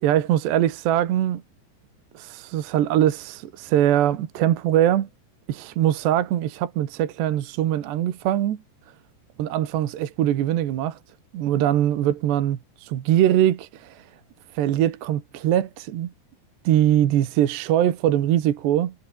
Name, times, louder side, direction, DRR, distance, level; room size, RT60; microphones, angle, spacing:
voice 1, 0.0-1.4 2.2-5.1 5.5-8.6 9.4-11.0 11.3-14.0 14.6-16.1 16.7-18.9, right 11 dB, 65° right, 3.8 m, -22 dB
omnidirectional pair, 5.5 m